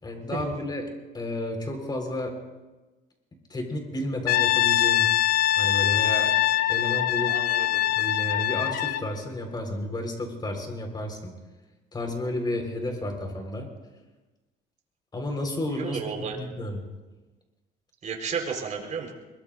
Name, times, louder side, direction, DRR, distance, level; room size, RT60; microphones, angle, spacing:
voice 1, 0.0-0.8 1.1-2.3 3.5-5.1 5.6-6.3 6.7-7.4 8.0-11.3 11.9-13.7 15.1-16.8, left 1 dB, 25° left, 2 dB, 4.6 m, -32 dB
Brass instrument, 4.3-9.1, left 13 dB, 65° left, 0.8 m, -23 dB
voice 2, 7.3-7.8 15.7-16.4 18.0-19.1, right 6 dB, 45° right, 1 dB, 4.4 m, -33 dB
24.0 x 23.0 x 2.6 m, 1.2 s
cardioid pair, 110°, 17 cm